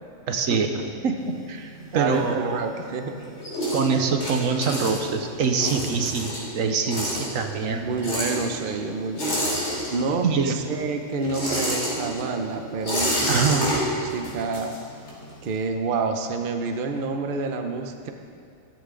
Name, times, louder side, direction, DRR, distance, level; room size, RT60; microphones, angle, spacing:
voice 1, 0.3-2.7 3.7-7.8 10.2-10.6 13.3-13.7, right 5 dB, 75° right, 5 dB, 1.3 m, -25 dB
sound 1, 1.2-2.8 3.1-10.3 10.6-15.3, equal, 55° left, 3.4 m, -29 dB
voice 2, 1.8-3.2 7.8-9.6 9.9-10.3 10.5-13.7 14.0-14.7 15.4-18.1, right 4 dB, 45° right, 5 dB, 0.9 m, -28 dB
14.0 x 13.5 x 3.8 m, 2.5 s
omnidirectional pair, 1.4 m